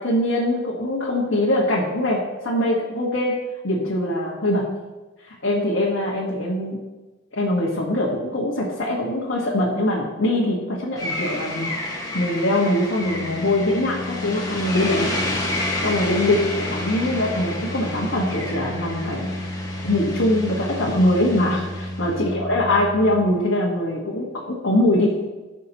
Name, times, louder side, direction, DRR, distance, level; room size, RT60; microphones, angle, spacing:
voice 1, 0.0-3.3 3.6-4.7 5.2-6.8 7.3-15.1 15.8-19.4 19.8-25.1, left 1 dB, 85° left, -5 dB, 1.6 m, -22 dB
sound 1, 11.0-22.3, left 1 dB, 20° left, 1.6 m, -31 dB
Organ, 12.8-23.6, left 1 dB, 55° right, 2.0 m, -33 dB
15.5 x 6.3 x 3.0 m, 1.2 s
head